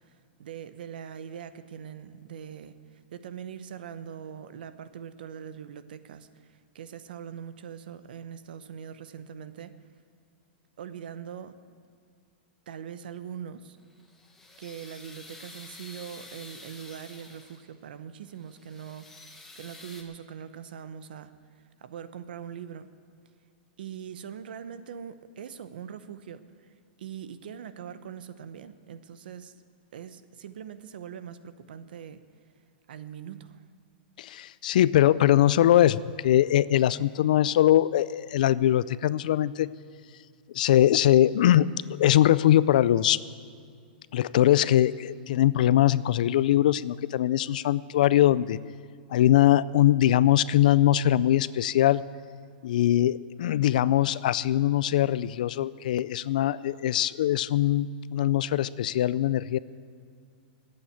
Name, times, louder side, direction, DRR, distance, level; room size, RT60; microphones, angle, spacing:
voice 1, 0.0-9.8 10.8-11.6 12.7-13.8 14.6-21.3 21.8-22.9 23.8-29.5 29.9-32.2 32.9-33.6, right 8 dB, 65° right, 12 dB, 0.8 m, -42 dB
sound 1, 13.8-17.8 18.2-20.0, left 2 dB, 5° left, 1.0 m, -49 dB
voice 2, 34.2-39.7 40.5-43.2 44.1-48.6 49.1-52.0 52.6-59.6, left 12 dB, 50° left, 18 dB, 0.3 m, -22 dB
13.0 x 8.7 x 9.1 m, 2.2 s
supercardioid pair, 180°, 5 cm